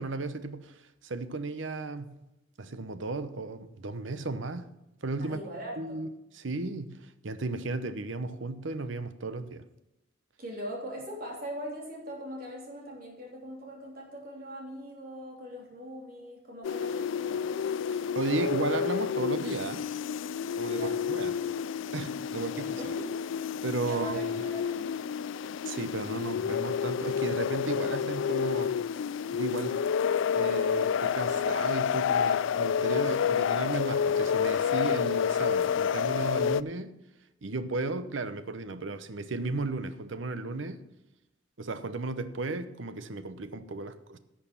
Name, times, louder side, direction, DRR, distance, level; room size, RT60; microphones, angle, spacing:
voice 1, 0.0-2.2 2.6-4.7 5.0-5.4 5.8-9.6 17.9-19.9 20.6-21.4 21.9-22.8 23.6-24.2 25.6-28.8 29.3-29.8 30.4-37.0 37.4-40.8 41.6-44.2, right 3 dB, 75° right, 0.8 m, -34 dB
voice 2, 5.2-6.0 10.4-17.5 20.7-20.9 21.3-21.5 22.5-23.2 23.8-25.0, right 1 dB, 45° right, 3.3 m, -41 dB
sound 1, 16.6-36.6, left 7 dB, 75° left, 0.3 m, -29 dB
11.5 x 6.5 x 7.2 m
head